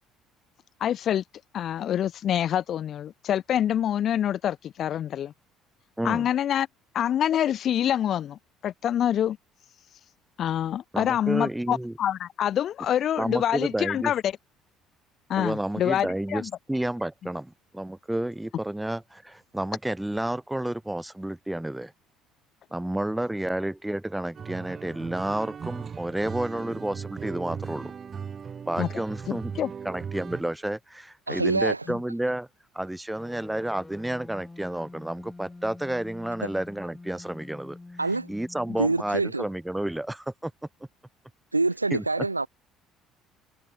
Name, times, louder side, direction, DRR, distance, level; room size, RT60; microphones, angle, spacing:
voice 1, 0.8-1.2 1.5-5.3 6.0-6.7 6.9-9.4 10.4-14.3 15.3-16.5 28.8-29.7 31.9-32.0, left 10 dB, 45° left, 0.4 m, -26 dB
voice 2, 6.0-6.3 10.9-11.9 13.2-14.1 15.4-21.9 22.7-27.9 28.7-29.5 29.8-32.5 32.7-37.8 38.3-40.5 41.9-42.3, right 1 dB, 5° right, 1.9 m, -31 dB
sound 1, 24.3-30.4, right 6 dB, 35° right, 2.8 m, -38 dB
voice 3, 31.3-31.8 36.4-36.5 38.0-38.3 38.8-39.4 41.5-42.5, right 3 dB, 90° right, 0.7 m, -25 dB
sound 2, 33.2-39.2, left 2 dB, 15° left, 2.8 m, -46 dB
figure-of-eight pair, 55°, 0 cm